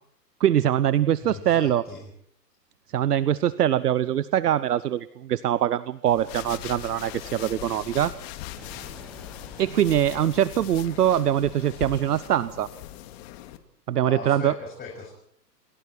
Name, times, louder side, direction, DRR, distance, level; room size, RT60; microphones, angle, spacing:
voice 1, 0.4-1.8 2.9-8.1 9.6-12.7 13.9-14.5, right 11 dB, 65° right, 17 dB, 1.0 m, -23 dB
voice 2, 1.2-2.1 14.0-15.1, left 5 dB, 20° left, -1 dB, 7.0 m, -38 dB
sound 1, 6.1-13.6, left 13 dB, 40° left, 2.4 m, -40 dB
Explosion, 8.6-11.5, equal, ahead, 5.7 m, -49 dB
28.0 x 24.0 x 4.5 m, 0.64 s
hypercardioid pair, 120°, 50 cm